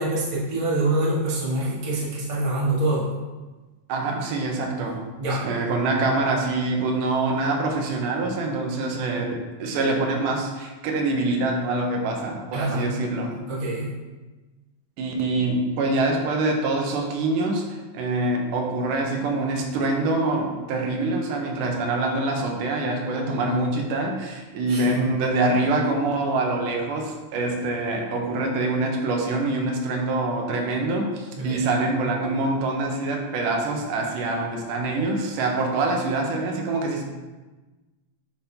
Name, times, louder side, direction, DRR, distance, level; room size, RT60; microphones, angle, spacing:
voice 1, 0.0-3.1 5.2-5.4 12.5-12.8 13.5-13.9 24.7-25.1 31.4-31.7, right 2 dB, 35° right, -8 dB, 0.4 m, -25 dB
voice 2, 3.9-5.0 5.3-13.4 15.0-37.0, right 2 dB, 85° right, 2 dB, 2.3 m, -25 dB
9.8 x 3.5 x 2.8 m, 1.2 s
omnidirectional pair, 3.6 m